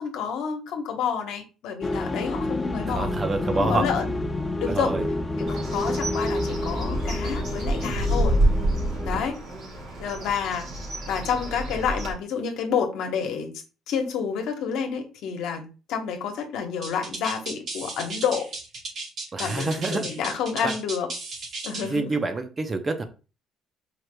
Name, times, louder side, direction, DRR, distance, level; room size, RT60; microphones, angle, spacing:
voice 1, 0.0-3.1 3.5-4.1 4.6-4.9 5.4-8.4 9.0-9.4 10.0-10.7 11.1-13.5 13.9-18.5 19.4-21.1 21.6-22.1, left 7 dB, 75° left, 4 dB, 1.1 m, -29 dB
sound 1, 1.8-9.3, left 2 dB, 15° left, 0.5 m, -29 dB
voice 2, 2.9-3.8 4.7-5.0 19.3-20.1 20.6-20.7 21.9-23.0, right 3 dB, 25° right, 7 dB, 0.7 m, -27 dB
Bird, 5.5-12.1, right 1 dB, 65° right, 2.1 m, -28 dB
sound 2, 16.8-22.0, right 3 dB, 50° right, 2.0 m, -35 dB
4.8 x 4.6 x 2.2 m, 0.33 s
cardioid pair, 115°, 0 cm